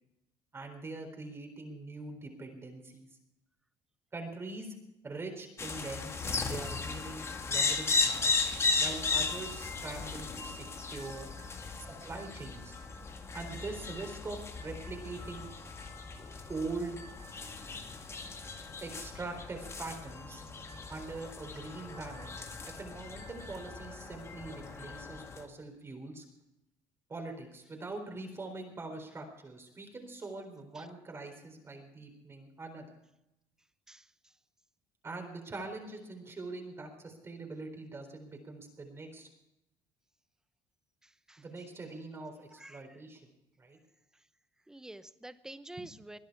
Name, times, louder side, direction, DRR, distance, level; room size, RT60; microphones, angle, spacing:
voice 1, 0.5-3.1 4.1-4.7 5.0-6.1 6.4-8.3 8.8-11.3 11.9-12.8 13.3-15.5 16.5-17.0 18.8-20.4 20.9-22.3 22.7-26.2 27.1-32.9 35.0-39.3 41.4-43.3 43.6-43.8, right 3 dB, 25° right, 3 dB, 4.0 m, -43 dB
sound 1, 5.6-25.4, left 4 dB, 30° left, 1.9 m, -36 dB
voice 2, 41.0-41.4 42.5-43.0 44.7-46.2, right 1 dB, 5° right, 13 dB, 0.9 m, -48 dB
21.0 x 10.5 x 4.8 m, 0.84 s
cardioid pair, 110°, 10 cm